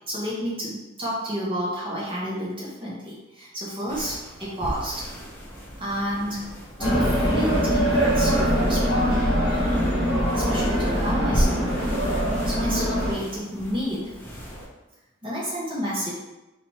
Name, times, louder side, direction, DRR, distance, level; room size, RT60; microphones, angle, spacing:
voice 1, 0.1-5.1 5.8-6.5 6.8-9.3 10.3-11.7 12.4-14.0 15.2-16.1, equal, 25° right, -7 dB, 1.4 m, -30 dB
sound 1, 3.9-14.7, equal, 10° left, 0.8 m, -35 dB
sound 2, 6.8-13.1, equal, 25° left, 1.4 m, -22 dB
3.8 x 3.1 x 4.2 m, 1.0 s
head